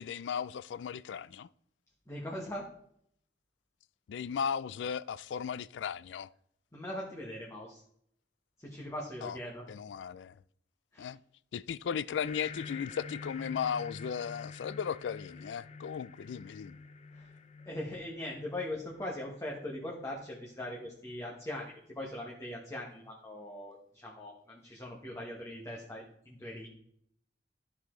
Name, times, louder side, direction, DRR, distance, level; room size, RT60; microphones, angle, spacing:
voice 1, 0.0-1.5 4.1-6.3 9.2-9.4 9.7-10.3 11.0-11.2 11.5-16.8, left 7 dB, 90° left, 0.3 m, -36 dB
voice 2, 2.1-2.7 6.7-7.8 8.6-9.6 10.9-11.1 17.1-17.3 17.7-26.7, left 1 dB, 15° left, 1.3 m, -41 dB
sound 1, 12.2-21.2, left 4 dB, 40° left, 0.6 m, -48 dB
13.0 x 4.9 x 3.8 m
head